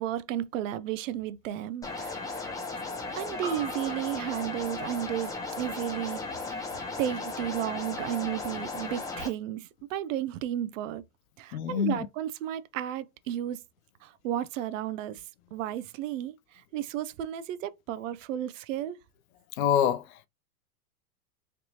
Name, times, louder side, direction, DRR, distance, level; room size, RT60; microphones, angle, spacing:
voice 1, 0.0-2.5 3.2-6.6 7.0-11.0 11.4-13.6 14.0-15.2 15.5-19.0, right 11 dB, 55° right, 0.5 m, -33 dB
sound 1, 1.8-9.3, left 3 dB, 5° left, 0.8 m, -36 dB
Piano, 3.4-7.9 8.2-8.3, right 3 dB, 25° right, 1.3 m, -47 dB
voice 2, 11.5-12.0 19.6-20.0, left 9 dB, 65° left, 0.5 m, -25 dB
3.2 x 2.8 x 2.7 m
hypercardioid pair, 110°, 46 cm